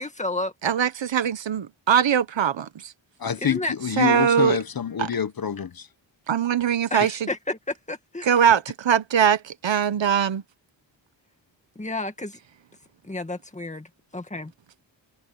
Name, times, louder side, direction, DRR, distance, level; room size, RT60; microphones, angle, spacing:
voice 1, 0.0-0.5 3.4-3.7 6.9-8.4 11.8-12.4 13.0-14.5, left 2 dB, 15° left, 2.0 m, -31 dB
voice 2, 0.6-2.9 4.0-4.6 5.0-5.1 6.3-7.3 8.2-10.4, right 8 dB, 70° right, 1.0 m, -21 dB
voice 3, 3.2-5.9, left 8 dB, 50° left, 1.0 m, -26 dB
wide cardioid pair, 150°, 46 cm